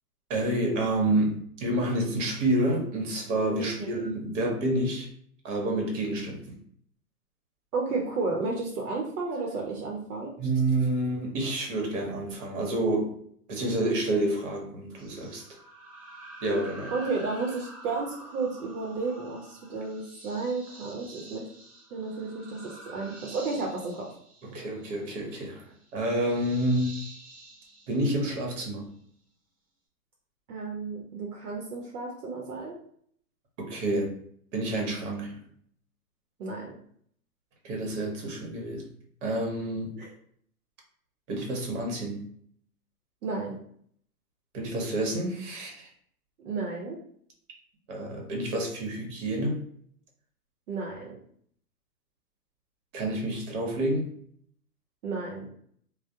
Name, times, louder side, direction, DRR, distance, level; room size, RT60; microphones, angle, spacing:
voice 1, 0.3-5.1 5.4-6.6 10.4-13.2 13.5-15.4 16.4-16.9 24.4-25.6 25.9-27.0 27.9-28.9 33.6-34.2 34.5-35.4 37.6-38.9 39.2-40.0 41.3-42.3 44.5-45.9 47.9-49.6 52.9-54.1, right 1 dB, 50° right, 0 dB, 1.0 m, -28 dB
voice 2, 3.6-3.9 7.7-10.3 16.9-21.5 21.9-24.1 30.5-32.8 36.4-36.8 39.9-40.1 43.2-43.6 46.4-47.0 50.7-51.2 55.0-55.5, right 3 dB, 70° right, -1 dB, 0.7 m, -32 dB
sound 1, 15.0-28.8, right 2 dB, 25° right, 0.3 m, -48 dB
2.2 x 2.0 x 2.7 m, 0.63 s
hypercardioid pair, 135°, 46 cm